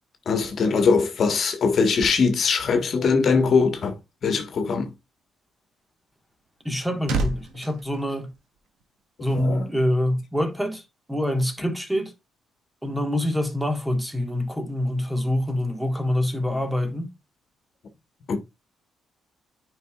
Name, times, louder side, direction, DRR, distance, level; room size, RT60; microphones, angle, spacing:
voice 1, 0.2-4.0 4.2-4.9 9.2-9.6 18.3-18.4, left 5 dB, 55° left, 1.5 m, -21 dB
sound 1, 6.3-9.0 9.3-9.5, right 3 dB, 85° right, 1.5 m, -31 dB
voice 2, 6.6-8.3 9.2-12.1 12.8-17.1, left 1 dB, 5° right, 1.5 m, -26 dB
9.2 x 5.4 x 2.4 m
cardioid pair, 90°, 0 cm